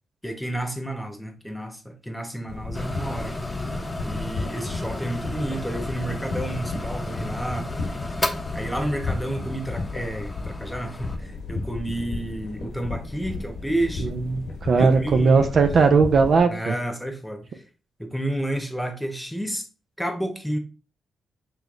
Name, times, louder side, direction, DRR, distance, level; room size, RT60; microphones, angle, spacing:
voice 1, 0.2-3.4 4.0-7.8 8.5-14.1 14.7-15.7 16.4-17.6 18.0-19.7 20.0-20.6, right 1 dB, 5° left, 1.1 m, -31 dB
sound 1, 2.5-16.4, left 3 dB, 70° left, 0.9 m, -34 dB
sound 2, 2.7-11.2, left 1 dB, 25° left, 0.7 m, -34 dB
voice 2, 14.0-16.7, right 4 dB, 60° right, 0.5 m, -19 dB
4.6 x 3.1 x 2.5 m
hypercardioid pair, 45°, 0 cm